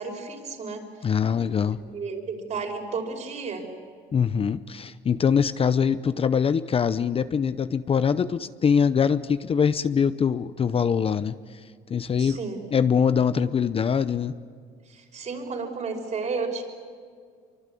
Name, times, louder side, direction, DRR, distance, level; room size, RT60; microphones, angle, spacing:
voice 1, 0.0-0.9 1.9-3.7 12.2-12.6 14.9-16.6, right 4 dB, 45° right, 3 dB, 5.4 m, -32 dB
voice 2, 1.0-1.8 4.1-11.6 11.9-12.4 12.7-14.3, left 7 dB, 35° left, 13 dB, 0.7 m, -23 dB
26.0 x 24.0 x 8.5 m, 2.1 s
cardioid pair, 110°, 17 cm